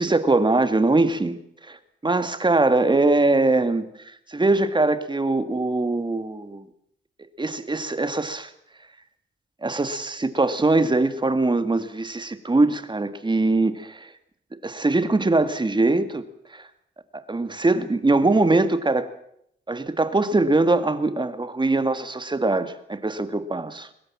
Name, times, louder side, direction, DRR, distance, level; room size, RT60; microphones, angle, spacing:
voice 1, 0.0-1.4 1.7-1.8 2.0-3.8 4.3-6.6 7.4-8.5 9.6-14.1 14.6-16.2 16.5-16.6 17.1-19.1 19.7-23.9, right 2 dB, 25° right, 11 dB, 2.0 m, -22 dB
23.0 x 20.5 x 7.4 m, 0.73 s
cardioid pair, 90°, 19 cm